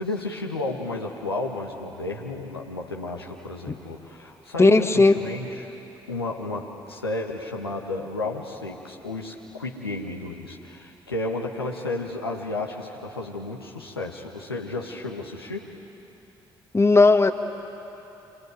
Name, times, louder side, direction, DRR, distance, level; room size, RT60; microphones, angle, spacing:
voice 1, 0.0-5.7 6.1-15.7, left 2 dB, 90° left, -1 dB, 1.6 m, -32 dB
voice 2, 4.6-5.1 16.7-17.3, left 3 dB, 20° left, 7 dB, 1.6 m, -15 dB
27.0 x 24.0 x 9.2 m, 3.0 s
figure-of-eight pair, 45°, 12 cm